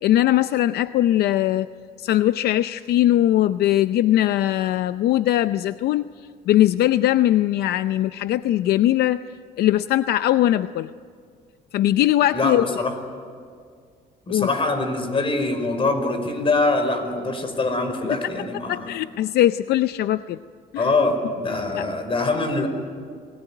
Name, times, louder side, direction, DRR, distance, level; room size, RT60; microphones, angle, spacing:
voice 1, 0.0-1.7 2.0-6.1 6.5-9.3 9.6-10.9 11.7-12.6 14.3-14.5 18.7-20.4 20.7-20.9 21.8-21.9, left 13 dB, 70° left, 13 dB, 0.6 m, -20 dB
voice 2, 12.3-12.9 14.3-18.9 20.8-22.7, left 3 dB, 30° left, 8 dB, 5.0 m, -23 dB
28.0 x 20.0 x 10.0 m, 2.1 s
cardioid pair, 110°, 17 cm